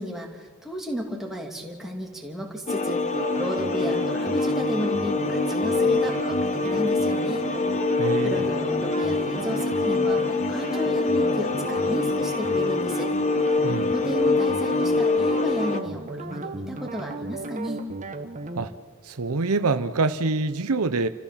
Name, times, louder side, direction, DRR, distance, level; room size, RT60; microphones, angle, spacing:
voice 1, 0.0-3.0 3.4-7.5 8.2-13.1 13.9-17.8, equal, ahead, 2.7 m, -33 dB
sound 1, 2.7-15.8, left 3 dB, 30° left, 0.9 m, -24 dB
sound 2, 3.1-18.6, right 2 dB, 35° right, 1.3 m, -35 dB
voice 2, 8.0-8.4 13.6-13.9 18.6-18.7 19.0-21.1, right 3 dB, 75° right, 0.8 m, -25 dB
29.0 x 14.5 x 7.3 m
head